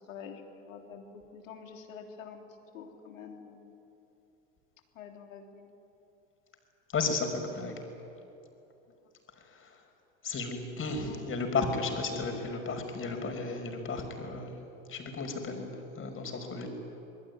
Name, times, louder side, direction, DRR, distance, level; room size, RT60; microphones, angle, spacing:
voice 1, 0.1-2.4 2.7-3.7 5.0-5.7 10.9-11.4, left 6 dB, 75° left, 3 dB, 3.5 m, -47 dB
voice 2, 6.9-7.8 9.5-9.7 10.2-14.5 14.9-16.7, left 3 dB, 30° left, 4 dB, 5.9 m, -34 dB
26.0 x 21.5 x 9.8 m, 2.9 s
hypercardioid pair, 85°, 40 cm